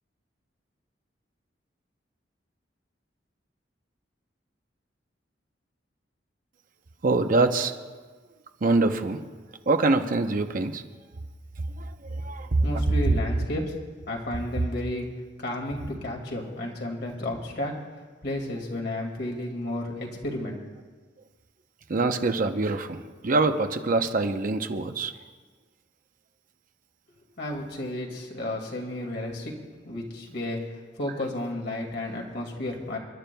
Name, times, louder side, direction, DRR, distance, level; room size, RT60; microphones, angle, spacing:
voice 1, 7.0-7.8 8.6-9.2 9.7-10.8 11.8-12.7 21.9-25.1, right 3 dB, 50° right, 7 dB, 0.7 m, -24 dB
voice 2, 12.6-13.7 14.1-15.1 15.4-17.7 18.2-20.6 27.4-29.5 29.8-33.0, left 1 dB, 65° left, 0 dB, 2.2 m, -32 dB
29.0 x 12.0 x 2.3 m, 1.4 s
head